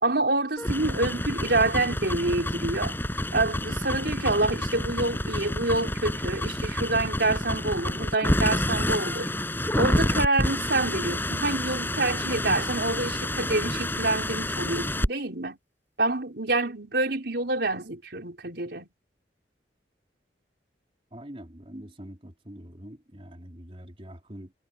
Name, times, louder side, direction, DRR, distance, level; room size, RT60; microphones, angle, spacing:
voice 1, 0.0-3.0 3.3-9.3 9.8-15.6 16.0-18.9, right 2 dB, 65° right, 4.6 m, -27 dB
sound 1, 0.6-15.1, left 1 dB, 10° left, 7.6 m, -28 dB
voice 2, 21.1-24.5, equal, 30° right, 4.1 m, -44 dB
head